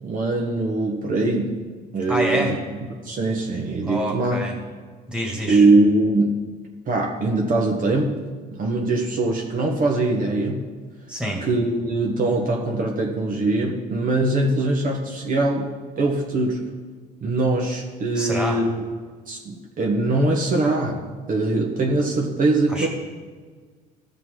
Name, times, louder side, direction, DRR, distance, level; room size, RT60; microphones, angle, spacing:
voice 1, 0.0-1.5 1.9-2.6 3.0-4.4 5.5-6.4 6.8-8.2 8.5-10.7 11.4-15.7 16.0-16.6 17.2-18.7 19.3-22.9, right 2 dB, 50° right, 0 dB, 1.3 m, -22 dB
voice 2, 2.1-2.5 3.9-4.5 5.1-5.7 11.1-11.4 18.1-18.6 22.7-22.9, equal, 5° right, -1 dB, 2.1 m, -26 dB
15.5 x 5.7 x 3.8 m, 1.5 s
cardioid pair, 110°, 18 cm